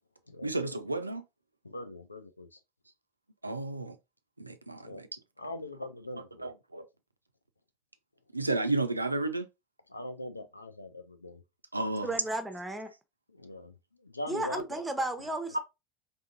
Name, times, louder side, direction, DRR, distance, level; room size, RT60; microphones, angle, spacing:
voice 1, 0.4-1.2 3.4-3.9 4.4-5.2 6.4-6.8 8.3-9.5 11.7-12.1 15.5-15.6, right 2 dB, 90° right, 0.3 m, -32 dB
voice 2, 1.6-2.5 4.8-5.0 5.4-6.5 9.9-11.4 13.4-13.7 14.0-14.6, left 1 dB, 90° left, 0.4 m, -41 dB
voice 3, 12.0-12.9 14.3-15.6, right 2 dB, 10° right, 0.6 m, -34 dB
3.7 x 2.5 x 2.5 m
figure-of-eight pair, 75°, 0 cm